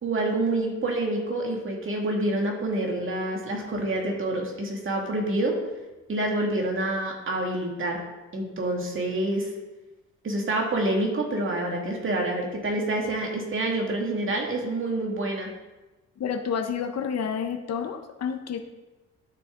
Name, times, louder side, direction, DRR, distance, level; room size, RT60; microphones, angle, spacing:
voice 1, 0.0-5.5 6.1-8.0 8.3-9.5 10.2-15.5, right 1 dB, 40° right, 0 dB, 2.3 m, -27 dB
voice 2, 16.2-18.6, left 7 dB, 60° left, 6 dB, 1.0 m, -29 dB
11.5 x 6.4 x 3.9 m, 1.1 s
cardioid pair, 90°, 30 cm